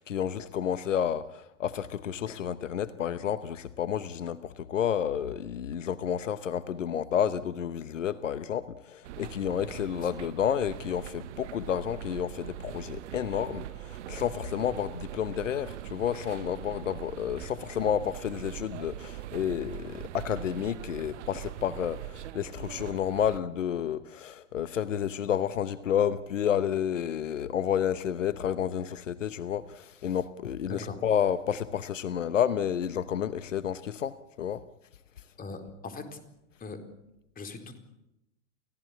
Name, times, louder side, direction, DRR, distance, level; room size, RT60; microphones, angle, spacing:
voice 1, 0.0-34.6, left 9 dB, 80° left, 15 dB, 1.0 m, -30 dB
sound 1, 9.0-23.4, right 13 dB, 65° right, 0.9 m, -42 dB
voice 2, 35.4-36.2 36.6-36.8 37.4-37.8, left 3 dB, 25° left, 7 dB, 4.3 m, -40 dB
29.5 x 17.0 x 8.5 m, 0.87 s
hypercardioid pair, 95°, 37 cm